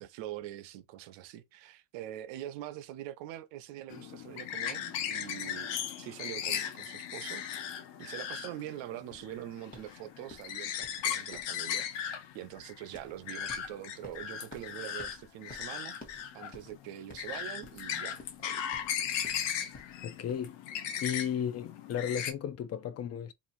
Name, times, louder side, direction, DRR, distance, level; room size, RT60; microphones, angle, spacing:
voice 1, 0.0-5.7 6.0-7.4 8.0-15.9 16.3-18.7, right 13 dB, 85° right, 0.6 m, -44 dB
sound 1, 3.9-22.3, left 9 dB, 75° left, 0.7 m, -37 dB
sound 2, 9.1-20.5, left 2 dB, 20° left, 1.1 m, -54 dB
voice 2, 20.0-20.6 21.0-23.3, left 9 dB, 40° left, 0.4 m, -34 dB
2.9 x 2.4 x 2.5 m
cardioid pair, 110°, 43 cm